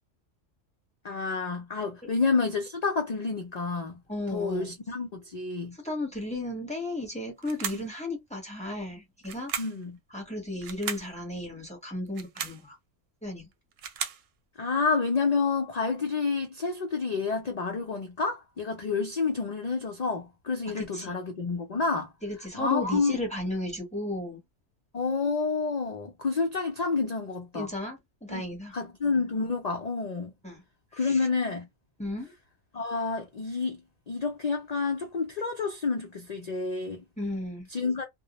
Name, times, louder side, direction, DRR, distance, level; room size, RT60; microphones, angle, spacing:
voice 1, 1.0-4.0 4.3-5.8 7.7-7.8 9.6-10.0 14.6-22.1 22.5-23.2 24.9-27.7 28.3-28.4 28.7-30.3 30.9-31.7 32.7-33.8 34.1-37.0 37.7-38.1, left 4 dB, 65° left, 0.4 m, -29 dB
voice 2, 4.1-4.8 5.8-9.5 10.1-12.8 13.2-13.5 20.8-21.1 22.2-24.4 27.5-28.7 30.4-30.6 31.0-31.2 32.0-32.3 37.2-37.7, left 1 dB, 5° left, 0.7 m, -34 dB
sound 1, 7.4-7.9 9.2-9.8 10.6-11.1 12.1-12.6 13.5-14.2, right 7 dB, 85° right, 1.0 m, -35 dB
2.1 x 2.0 x 2.8 m
omnidirectional pair, 1.3 m